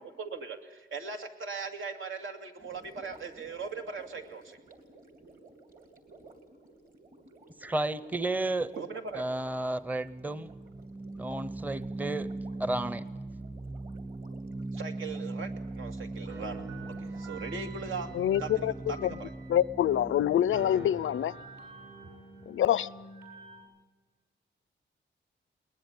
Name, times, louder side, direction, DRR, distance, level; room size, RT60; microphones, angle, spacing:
voice 1, 0.2-4.6 8.8-9.3 14.7-16.6 17.0-18.1 18.4-19.3, right 4 dB, 80° right, 2.5 m, -39 dB
Gurgling, 2.6-17.9, right 3 dB, 45° right, 3.1 m, -56 dB
voice 2, 7.6-8.7 9.1-10.5 11.2-12.3 12.6-13.0, right 2 dB, 10° right, 0.7 m, -32 dB
sound 1, 9.6-22.4, right 2 dB, 30° right, 1.9 m, -40 dB
sound 2, 16.3-20.1 20.5-23.6, right 3 dB, 60° right, 6.9 m, -48 dB
voice 3, 18.1-19.1 19.5-21.3 22.5-22.9, left 11 dB, 90° left, 0.6 m, -26 dB
21.0 x 20.5 x 8.4 m
wide cardioid pair, 155°, 20 cm